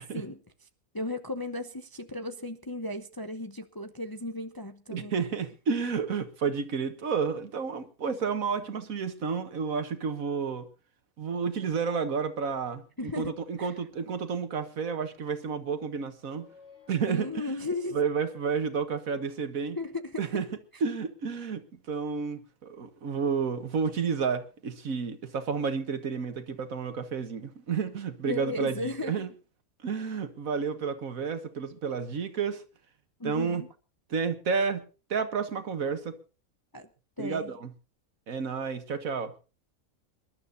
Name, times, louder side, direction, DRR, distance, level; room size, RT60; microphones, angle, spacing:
voice 1, 0.9-5.2 13.0-13.3 13.6-13.8 17.1-18.0 19.8-20.2 28.2-29.1 33.2-33.7 36.7-36.9 37.2-37.5, left 2 dB, 20° left, 0.6 m, -35 dB
voice 2, 4.9-10.7 11.2-16.5 16.9-17.3 17.9-19.8 20.2-20.5 20.8-28.7 29.1-29.3 29.8-32.6 33.2-33.6 34.1-34.8 35.1-36.2 37.2-37.7 38.3-39.3, right 5 dB, 70° right, 1.8 m, -31 dB
sound 1, 16.0-19.6, left 5 dB, 50° left, 5.6 m, -58 dB
26.5 x 12.0 x 2.7 m
omnidirectional pair, 1.5 m